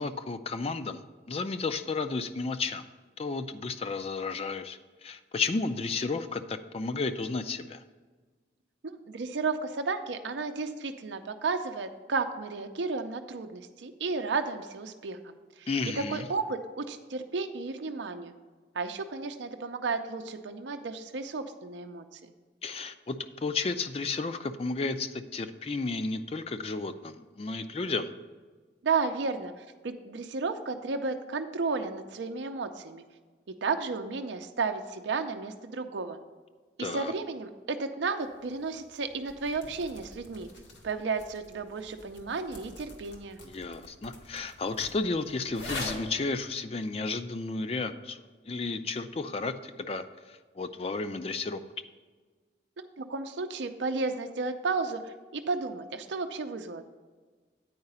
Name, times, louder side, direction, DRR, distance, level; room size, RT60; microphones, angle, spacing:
voice 1, 0.0-2.9 3.2-7.8 15.7-16.3 22.6-28.1 36.8-37.1 43.4-51.6, left 3 dB, 35° left, 9 dB, 0.4 m, -33 dB
voice 2, 8.8-15.7 16.1-18.3 18.7-22.3 28.8-33.0 33.5-36.2 36.8-40.5 40.8-43.4 52.8-56.9, right 4 dB, 80° right, 7 dB, 0.5 m, -33 dB
sound 1, 38.2-46.3, left 2 dB, 80° left, 1.6 m, -45 dB
9.4 x 4.8 x 5.5 m, 1.4 s
head